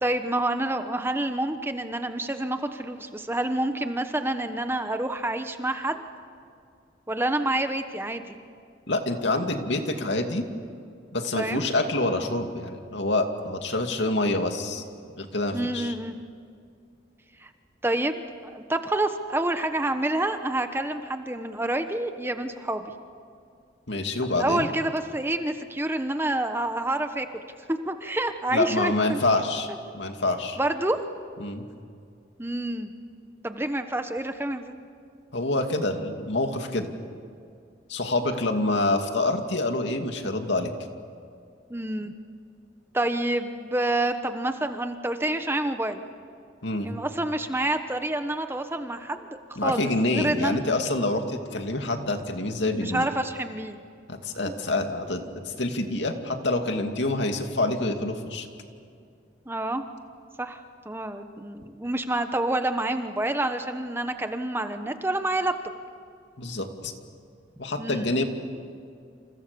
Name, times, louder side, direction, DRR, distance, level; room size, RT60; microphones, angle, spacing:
voice 1, 0.0-6.0 7.1-8.3 11.4-11.7 15.5-16.2 17.4-17.5 17.8-22.9 24.3-27.4 27.7-29.2 30.6-31.0 32.4-32.9 33.4-34.8 41.7-42.1 42.9-46.0 46.8-50.6 52.7-53.8 54.4-54.5 59.5-59.8 60.4-65.5 67.8-68.1, right 1 dB, 10° right, 8 dB, 1.1 m, -28 dB
voice 2, 8.9-10.4 11.1-14.8 15.2-15.9 23.9-24.7 28.5-29.7 29.9-30.6 31.4-31.7 35.3-36.9 37.9-40.7 46.6-46.9 49.6-53.1 54.1-58.5 66.4-66.9 67.6-68.2, left 2 dB, 70° left, 5 dB, 2.5 m, -26 dB
29.0 x 28.5 x 7.0 m, 2.3 s
head